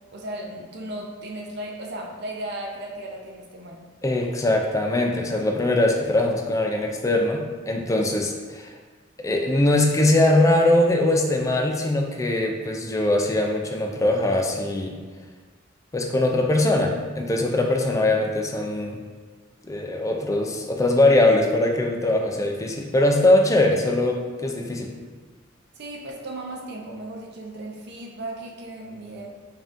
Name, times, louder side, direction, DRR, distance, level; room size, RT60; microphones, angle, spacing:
voice 1, 0.1-3.9 25.8-29.3, right 1 dB, 60° right, 0 dB, 0.5 m, -36 dB
voice 2, 4.0-8.7 9.2-15.0 15.9-19.0 19.7-24.9, left 1 dB, 15° left, 2 dB, 0.3 m, -21 dB
5.4 x 2.6 x 2.5 m, 1.4 s
head